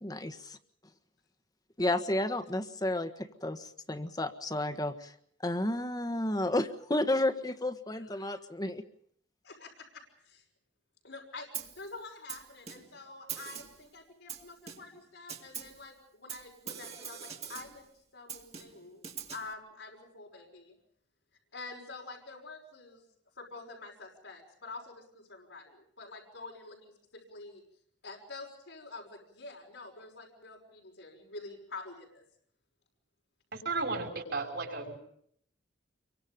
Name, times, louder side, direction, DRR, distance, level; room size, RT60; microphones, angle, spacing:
voice 1, 0.0-0.6 1.8-5.1 5.4-8.8, left 1 dB, 20° left, 9 dB, 1.5 m, -32 dB
voice 2, 8.1-8.4 9.4-10.4 11.0-11.5 11.7-17.8 18.1-19.0 19.3-20.7 21.5-23.0 23.4-27.6 28.0-32.2, left 3 dB, 85° left, -1 dB, 5.9 m, -47 dB
Snare drum, 11.5-11.9 12.3-13.0 13.3-13.8 14.3-15.0 15.3-15.8 16.3-17.8 18.3-19.5, right 7 dB, 35° right, 2.3 m, -43 dB
voice 3, 33.5-35.0, right 3 dB, 65° right, 2 dB, 5.5 m, -34 dB
28.0 x 24.0 x 5.3 m, 0.67 s
head